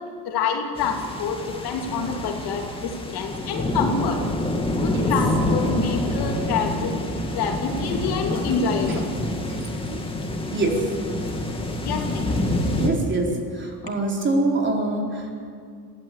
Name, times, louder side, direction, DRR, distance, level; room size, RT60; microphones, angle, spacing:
voice 1, 0.3-4.2 4.8-6.9 7.3-9.1 11.8-12.3, left 5 dB, 65° left, 2 dB, 2.9 m, -27 dB
sound 1, 0.8-12.9, left 1 dB, 15° left, 2.7 m, -27 dB
voice 2, 10.5-10.9 12.8-15.3, right 2 dB, 25° right, 0 dB, 4.4 m, -25 dB
21.5 x 16.0 x 8.4 m, 2.4 s
cardioid pair, 135°, 41 cm